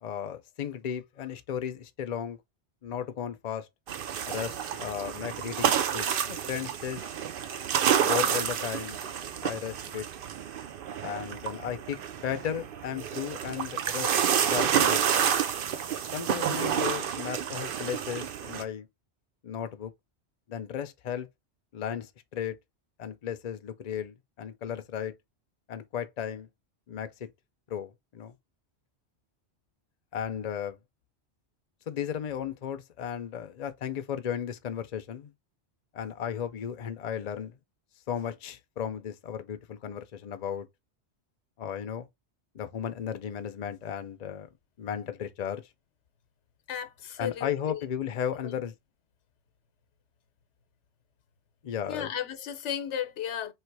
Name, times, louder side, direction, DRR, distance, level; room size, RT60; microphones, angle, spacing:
voice 1, 0.0-2.4 2.8-3.7 4.3-7.1 8.0-9.0 9.4-10.1 11.0-14.1 14.5-15.3 16.1-18.9 19.4-19.9 20.5-21.3 21.7-22.6 23.0-25.1 25.7-26.5 26.9-27.3 27.7-28.3 30.1-30.8 31.9-35.3 35.9-37.6 38.1-40.7 41.6-42.1 42.5-44.5 44.8-45.7 47.2-48.7 51.6-52.1, left 8 dB, 45° left, 0.6 m, -35 dB
sound 1, 3.9-18.6, right 8 dB, 60° right, 0.7 m, -29 dB
voice 2, 46.7-47.8 48.4-48.6 51.9-53.5, left 9 dB, 85° left, 1.0 m, -34 dB
3.2 x 3.2 x 4.6 m
omnidirectional pair, 1.2 m